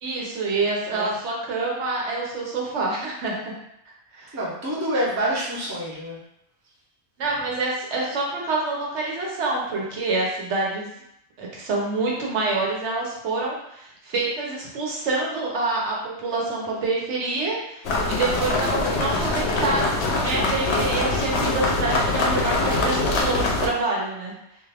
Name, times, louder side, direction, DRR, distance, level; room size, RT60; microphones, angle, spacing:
voice 1, 0.0-3.5 4.1-4.3 7.2-10.9 11.4-24.3, right 3 dB, 85° right, -3 dB, 1.1 m, -27 dB
voice 2, 4.3-6.2, right 1 dB, 20° right, -6 dB, 0.6 m, -27 dB
sound 1, 17.8-23.7, left 2 dB, 75° left, 0.8 m, -23 dB
2.6 x 2.4 x 3.3 m, 0.77 s
omnidirectional pair, 1.1 m